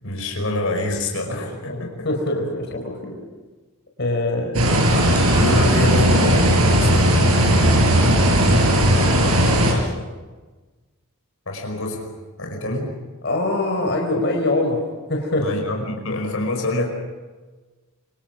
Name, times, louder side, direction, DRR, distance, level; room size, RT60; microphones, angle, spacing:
voice 1, 0.0-2.1 5.3-6.9 11.5-12.1 12.4-12.9 15.4-16.9, left 2 dB, 70° left, 2 dB, 5.1 m, -26 dB
voice 2, 1.3-3.1 4.0-4.7 8.9-9.8 13.2-14.8 15.1-15.5, left 2 dB, 55° left, 2 dB, 5.1 m, -24 dB
sound 1, 4.5-9.7, equal, 80° right, 6.6 m, -16 dB
27.5 x 25.5 x 6.1 m, 1.3 s
head